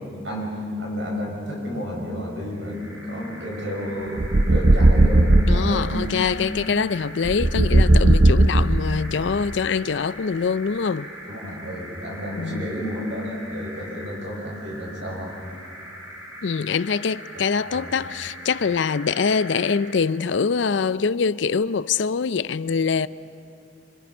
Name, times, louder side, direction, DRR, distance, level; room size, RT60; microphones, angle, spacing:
voice 1, 0.0-6.1 11.3-15.3 17.3-17.9, equal, 85° right, 6.3 m, -31 dB
sound 1, 2.6-19.9, equal, 25° right, 5.2 m, -41 dB
sound 2, 4.2-5.7 7.2-9.1, right 1 dB, 60° right, 0.7 m, -16 dB
voice 2, 5.5-11.1 12.4-12.7 16.4-23.1, left 5 dB, 75° left, 0.5 m, -24 dB
26.0 x 26.0 x 5.5 m
head